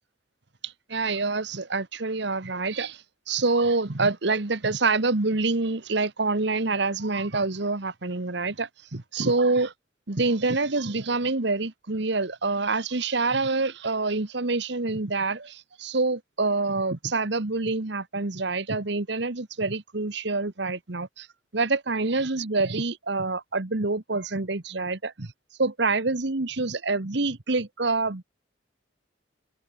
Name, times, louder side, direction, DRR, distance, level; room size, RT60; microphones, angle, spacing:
voice 1, 0.6-9.7 10.1-21.3 21.5-25.3 25.6-28.2, right 3 dB, 60° right, 1.3 m, -26 dB
open air
head